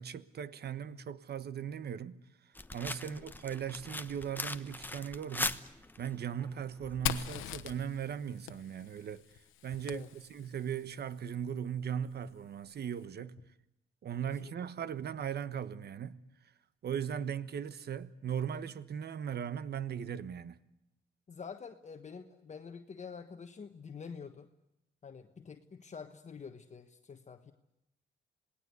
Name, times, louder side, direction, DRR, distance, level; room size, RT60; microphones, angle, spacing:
voice 1, 0.0-2.2 2.4-5.6 6.0-9.2 9.6-13.4 14.0-16.2 16.8-20.6, right 8 dB, 55° right, 1.2 m, -38 dB
sound 1, 2.6-7.6, left 2 dB, 10° left, 1.1 m, -41 dB
Fire, 7.1-10.7, left 13 dB, 90° left, 1.1 m, -41 dB
voice 2, 21.3-24.5 25.0-27.5, left 6 dB, 35° left, 1.3 m, -47 dB
27.5 x 19.0 x 8.2 m
cardioid pair, 90°, 20 cm